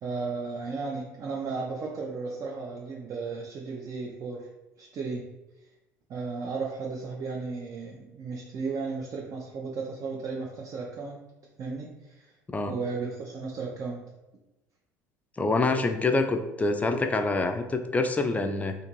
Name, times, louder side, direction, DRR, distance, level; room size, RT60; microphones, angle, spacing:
voice 1, 0.0-4.5 4.8-5.3 6.1-11.2 11.6-12.3 12.7-14.0, right 4 dB, 40° right, -1 dB, 0.5 m, -34 dB
voice 2, 15.4-18.7, left 3 dB, 15° left, 6 dB, 0.4 m, -26 dB
2.5 x 2.5 x 2.9 m, 0.99 s
hypercardioid pair, 65°, 9 cm